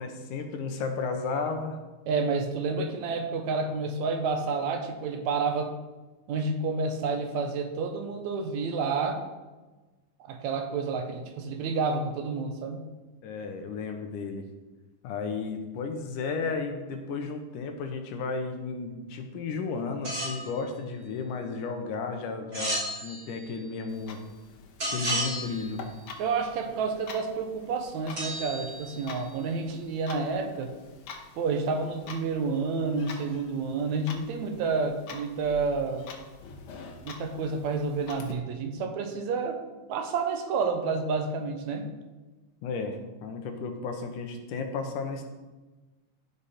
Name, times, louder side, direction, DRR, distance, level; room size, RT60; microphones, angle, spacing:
voice 1, 0.0-1.8 2.8-2.9 13.2-14.4 15.0-24.2 24.9-25.8 42.6-45.2, left 4 dB, 90° left, 5 dB, 2.6 m, -33 dB
voice 2, 2.1-5.8 6.3-9.2 10.2-12.8 26.2-30.7 31.3-36.1 37.0-39.6 39.9-41.9, right 4 dB, 70° right, 5 dB, 2.1 m, -29 dB
sound 1, 20.0-20.5 22.5-23.5 24.8-25.8 28.2-29.3, right 1 dB, 30° right, 4.1 m, -33 dB
Clock, 23.9-38.3, left 5 dB, 70° left, 2.1 m, -46 dB
15.0 x 5.3 x 4.2 m, 1.2 s
omnidirectional pair, 3.6 m